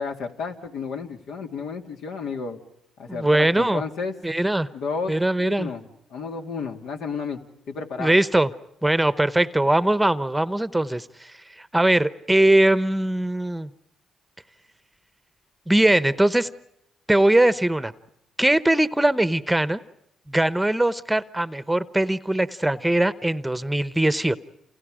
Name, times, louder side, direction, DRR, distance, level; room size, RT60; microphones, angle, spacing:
voice 1, 0.0-2.6 3.0-4.1 4.7-5.8 6.1-7.4 7.7-8.1, left 5 dB, 80° left, 4 dB, 2.5 m, -32 dB
voice 2, 3.1-3.8 4.2-4.7 5.1-5.7 8.0-8.5 8.8-13.7 15.7-16.5 17.1-17.9 18.4-19.8 20.3-24.4, right 1 dB, 5° right, 15 dB, 0.9 m, -21 dB
30.0 x 28.0 x 5.0 m, 0.79 s
cardioid pair, 90°, 0 cm